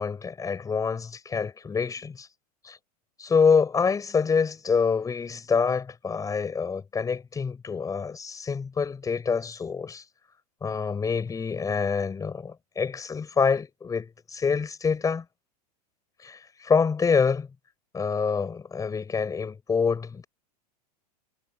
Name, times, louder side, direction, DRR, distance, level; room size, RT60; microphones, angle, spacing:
voice 1, 0.0-2.3 2.6-2.8 3.2-10.0 10.6-15.2 16.2-17.5 17.9-20.3, left 5 dB, 15° left, 5.9 m, -26 dB
hypercardioid pair, 125°, 21 cm